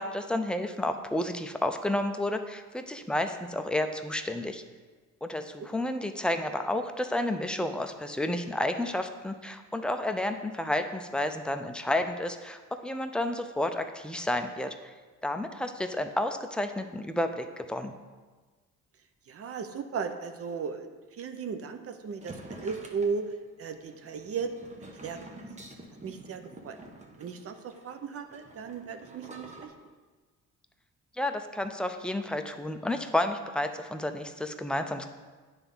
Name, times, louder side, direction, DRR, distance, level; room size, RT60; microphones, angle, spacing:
voice 1, 0.0-4.6 5.2-14.7 15.2-17.9 31.2-35.1, left 1 dB, 5° left, 6 dB, 0.5 m, -31 dB
voice 2, 19.3-23.3 23.6-24.5 25.0-25.2 26.0-26.8 27.2-29.7, right 5 dB, 50° right, 8 dB, 0.7 m, -36 dB
sound 1, 22.2-29.7, right 1 dB, 25° right, 1.1 m, -48 dB
9.7 x 3.5 x 5.5 m, 1.4 s
cardioid pair, 90°, 30 cm